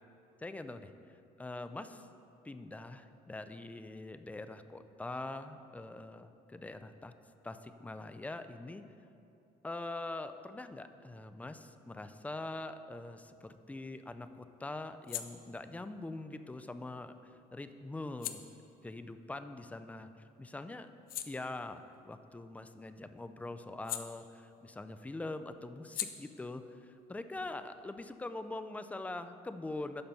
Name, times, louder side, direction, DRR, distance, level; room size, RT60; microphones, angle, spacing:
voice 1, 0.4-0.9 1.4-2.1 2.4-7.1 7.4-8.8 9.6-17.1 17.5-18.5 18.8-20.9 21.3-30.0, left 2 dB, 10° left, 10 dB, 0.4 m, -43 dB
sound 1, 13.3-20.2 20.6-24.8 25.1-28.5, left 11 dB, 60° left, 0.5 m, -48 dB
11.5 x 4.3 x 5.3 m, 2.7 s
cardioid pair, 110°, 17 cm